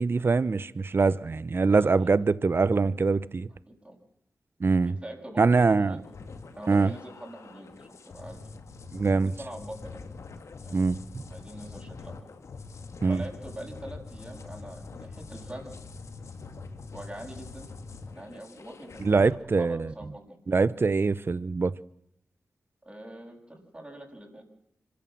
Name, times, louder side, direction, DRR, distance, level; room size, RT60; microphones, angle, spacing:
voice 1, 0.0-3.5 4.6-4.9 5.4-6.0 6.7-6.9 8.9-9.3 10.7-11.2 13.0-13.2 19.0-19.9 20.5-21.7, right 4 dB, 45° right, 0.9 m, -23 dB
voice 2, 1.6-2.1 3.7-4.0 4.9-6.1 6.5-8.5 9.2-10.0 10.6-10.9 11.3-12.2 13.1-15.7 16.9-17.7 18.2-20.4 22.8-24.4, right 1 dB, 25° right, 7.2 m, -44 dB
sound 1, 6.0-19.3, left 4 dB, 70° left, 2.2 m, -44 dB
25.5 x 15.0 x 7.7 m
cardioid pair, 50°, 5 cm